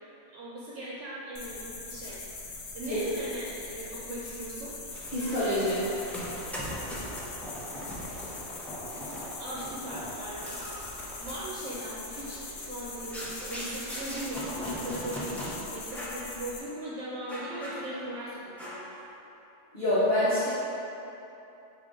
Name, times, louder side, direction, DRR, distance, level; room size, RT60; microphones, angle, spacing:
voice 1, 0.3-2.2 2.7-4.8 9.4-10.7 11.2-18.9, right 1 dB, 90° right, -6 dB, 1.0 m, -39 dB
sound 1, 1.4-16.6, left 3 dB, 90° left, 1.0 m, -42 dB
sound 2, 4.9-15.6 15.9-16.3 16.6-16.8 17.3-18.2 18.6-19.0, equal, ahead, 0.5 m, -40 dB
voice 2, 5.1-5.8 19.7-20.5, left 1 dB, 45° left, -14 dB, 1.0 m, -26 dB
5.1 x 2.8 x 3.7 m, 3.0 s
omnidirectional pair, 1.2 m